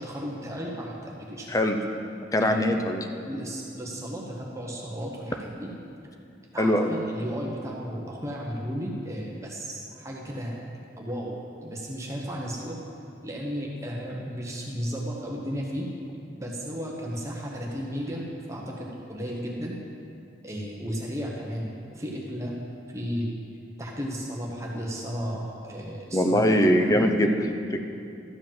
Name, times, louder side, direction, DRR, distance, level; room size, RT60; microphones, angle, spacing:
voice 1, 0.0-1.6 2.4-2.9 3.3-5.7 6.5-10.6 11.0-12.8 13.2-15.9 16.4-19.7 20.4-22.5 22.9-23.3 23.8-27.3, equal, 15° right, -2 dB, 1.0 m, -34 dB
voice 2, 2.3-3.1 6.6-6.9 26.1-27.8, equal, 20° left, 5 dB, 0.6 m, -22 dB
12.5 x 4.9 x 7.5 m, 2.6 s
head